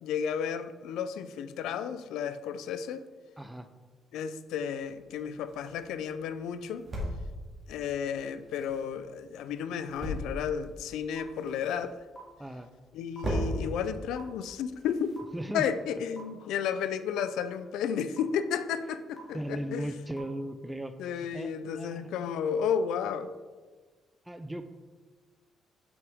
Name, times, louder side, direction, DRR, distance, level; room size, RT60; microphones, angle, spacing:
voice 1, 0.0-3.1 4.1-6.9 7.7-11.9 12.9-15.2 15.5-19.9 21.0-23.3, left 7 dB, 90° left, 13 dB, 0.3 m, -32 dB
voice 2, 3.4-3.7 12.4-12.7 15.3-15.7 19.3-22.1 24.3-24.7, right 1 dB, 10° right, 9 dB, 0.4 m, -37 dB
sound 1, 4.7-15.9, equal, 40° right, 2.1 m, -40 dB
sound 2, 11.2-11.3 12.1-12.2 13.1-13.2 14.2-14.3 15.2-15.3 16.2-16.3 17.2-17.3 18.2-18.3 19.2-19.3 20.2-20.3, right 2 dB, 35° left, 1.7 m, -46 dB
6.2 x 5.8 x 3.5 m, 1.4 s
cardioid pair, 90°, 0 cm